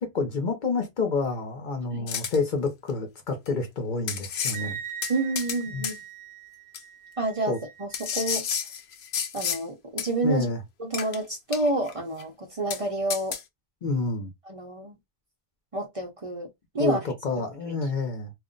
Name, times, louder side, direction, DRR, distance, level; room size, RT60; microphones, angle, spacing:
voice 1, 0.0-4.8 5.7-5.9 7.5-7.6 10.2-10.6 13.8-14.3 16.8-18.3, left 3 dB, 55° left, 0.8 m, -28 dB
sound 1, 2.1-2.4 3.5-3.6 4.1-4.6 5.0-5.6 5.8-6.0 6.7-6.8 7.9-9.6 10.0-10.1 10.9-11.2 11.5-11.9 12.2-12.3 12.7-12.8 13.1-13.4, left 7 dB, 85° left, 0.8 m, -31 dB
Wind instrument woodwind instrument, 4.5-8.4, right 8 dB, 60° right, 1.0 m, -41 dB
voice 2, 5.1-6.0 7.2-8.5 9.3-10.4 10.8-13.4 14.5-15.0 15.7-16.5 16.7-17.0, right 2 dB, 40° right, 0.7 m, -29 dB
2.4 x 2.1 x 3.7 m
omnidirectional pair, 1.0 m